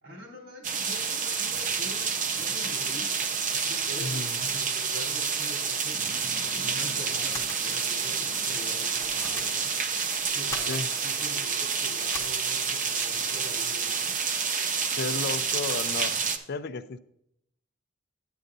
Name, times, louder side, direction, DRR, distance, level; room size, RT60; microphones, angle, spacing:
voice 1, 0.0-6.0 6.4-9.8 10.3-14.4, left 1 dB, 75° right, -1 dB, 3.8 m, -44 dB
sound 1, 0.6-16.4, right 5 dB, 40° right, 0.6 m, -29 dB
voice 2, 4.0-4.4 10.6-10.9 14.9-17.0, left 3 dB, 55° left, 12 dB, 0.4 m, -33 dB
Sony Cassette Recorder button presses hiss, 9.0-11.2 12.1-12.4, left 3 dB, 15° left, 0.9 m, -45 dB
9.9 x 9.1 x 2.6 m, 0.74 s
head